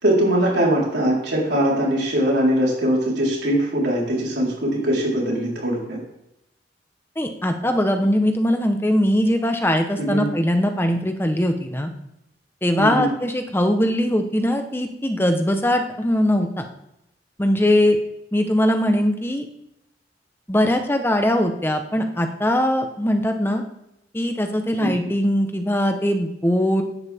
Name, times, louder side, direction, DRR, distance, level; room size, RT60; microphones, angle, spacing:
voice 1, 0.0-6.0 10.0-10.3 12.8-13.1 24.8-24.9, right 1 dB, 70° right, -4 dB, 4.4 m, -21 dB
voice 2, 7.2-11.9 12.6-16.7 17.4-18.0 18.3-19.5 20.5-23.6 24.1-26.8, left 1 dB, 15° left, 5 dB, 1.1 m, -21 dB
16.0 x 11.0 x 3.6 m, 0.84 s
head